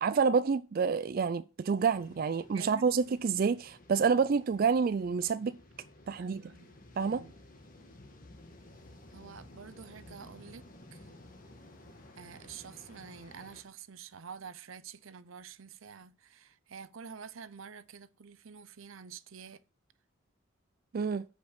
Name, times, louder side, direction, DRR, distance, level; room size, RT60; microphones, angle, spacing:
voice 1, 0.0-5.6 6.1-6.4 7.0-7.2 20.9-21.2, right 5 dB, 45° right, 0.4 m, -28 dB
sound 1, 1.8-13.6, left 1 dB, 45° left, 1.5 m, -54 dB
voice 2, 6.2-7.3 9.1-11.0 12.2-19.6, right 6 dB, 85° right, 0.7 m, -48 dB
7.9 x 5.2 x 6.5 m
head